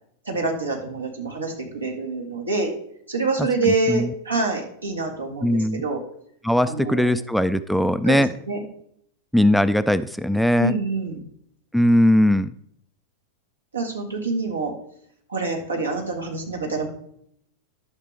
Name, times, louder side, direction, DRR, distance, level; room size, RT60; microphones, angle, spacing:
voice 1, 0.3-2.7 3.1-6.0 6.6-7.2 8.0-8.6 10.6-11.2 13.7-14.7 15.3-16.9, right 3 dB, 75° right, 1 dB, 1.8 m, -26 dB
voice 2, 3.7-4.1 5.4-5.8 6.4-8.3 9.3-10.8 11.7-12.5, left 1 dB, ahead, 12 dB, 0.3 m, -19 dB
11.5 x 6.6 x 3.3 m, 0.69 s
figure-of-eight pair, 90°, 0 cm